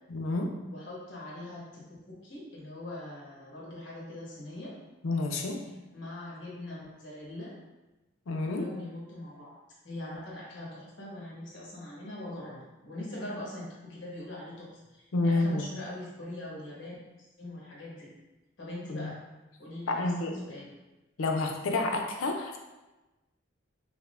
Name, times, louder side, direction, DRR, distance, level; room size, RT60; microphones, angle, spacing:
voice 1, 0.1-0.5 5.0-5.6 8.3-8.7 15.1-15.6 18.9-19.1 19.9-20.4 21.2-22.6, left 2 dB, 80° left, 2 dB, 0.5 m, -29 dB
voice 2, 0.7-4.7 5.9-7.5 8.3-9.5 9.8-17.0 17.4-18.1 18.6-19.2 19.6-20.7, left 1 dB, 60° left, -6 dB, 1.2 m, -42 dB
5.4 x 2.1 x 2.4 m, 1.1 s
head